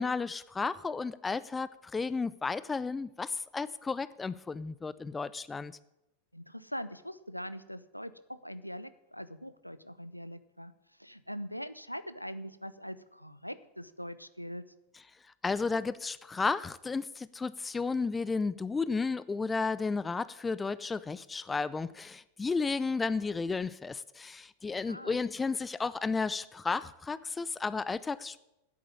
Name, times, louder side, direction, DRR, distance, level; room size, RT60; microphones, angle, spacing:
voice 1, 0.0-5.7 15.4-28.4, left 4 dB, 15° left, 17 dB, 0.5 m, -33 dB
voice 2, 6.3-10.7 11.0-14.6 24.8-25.2, equal, 90° left, 14 dB, 0.6 m, -42 dB
9.8 x 8.6 x 9.7 m, 0.91 s
figure-of-eight pair, 90°, 0 cm